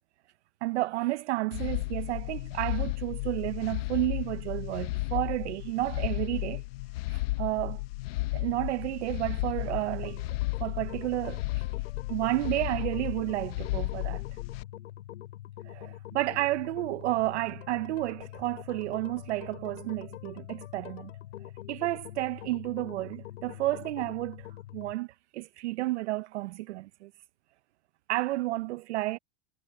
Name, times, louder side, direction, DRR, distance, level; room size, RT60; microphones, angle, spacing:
voice 1, 0.6-6.6 7.1-7.8 8.3-10.3 10.6-11.6 12.1-14.2 15.6-21.1 21.7-24.5 24.7-25.1 25.3-27.1 28.1-29.2, right 18 dB, 65° right, 0.7 m, -31 dB
sound 1, 1.5-14.6, left 20 dB, 50° left, 0.9 m, -34 dB
sound 2, 9.6-24.9, left 14 dB, 75° left, 5.5 m, -45 dB
supercardioid pair, 160°, 38 cm